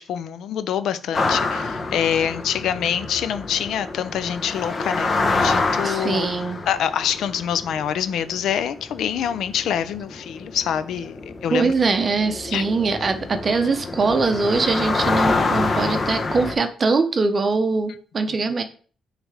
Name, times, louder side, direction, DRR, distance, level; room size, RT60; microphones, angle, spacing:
voice 1, 0.0-6.3 6.7-11.7 12.5-12.7, left 9 dB, 75° left, 0.5 m, -25 dB
sound 1, 1.1-16.5, left 3 dB, 35° left, 0.9 m, -27 dB
voice 2, 5.8-6.6 11.5-18.6, right 4 dB, 35° right, 0.7 m, -22 dB
6.3 x 3.3 x 4.8 m
cardioid pair, 110°, 0 cm